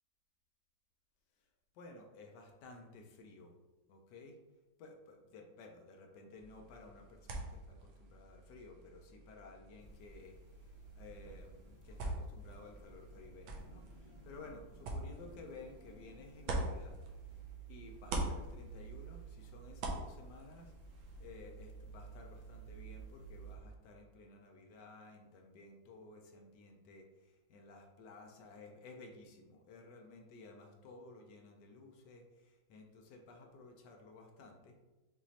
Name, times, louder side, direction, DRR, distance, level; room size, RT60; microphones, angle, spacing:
voice 1, 1.7-3.6 3.9-4.4 4.8-17.0 17.7-34.8, left 3 dB, 70° left, 3 dB, 1.0 m, -55 dB
sound 1, 6.4-17.6 17.9-21.3, right 2 dB, 75° right, 1.5 m, -45 dB
sound 2, 9.8-23.6, right 5 dB, 10° left, 0.6 m, -54 dB
sound 3, 11.9-16.7, equal, 50° left, 1.7 m, -62 dB
5.9 x 3.1 x 2.7 m, 1.1 s
omnidirectional pair, 2.3 m